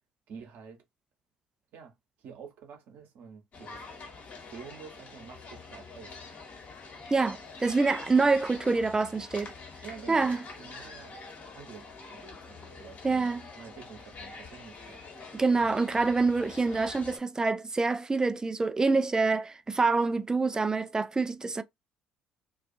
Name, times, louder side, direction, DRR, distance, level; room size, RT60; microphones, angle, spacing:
voice 1, 0.3-0.8 1.7-3.9 4.4-6.2 9.8-11.2 11.5-15.0, right 6 dB, 55° right, 0.9 m, -48 dB
sound 1, 3.5-17.2, left 4 dB, 45° left, 1.1 m, -46 dB
voice 2, 7.1-9.5 10.1-10.4 13.0-13.4 15.3-21.6, right 3 dB, 15° right, 0.3 m, -26 dB
2.4 x 2.3 x 2.5 m
figure-of-eight pair, 50°, 4 cm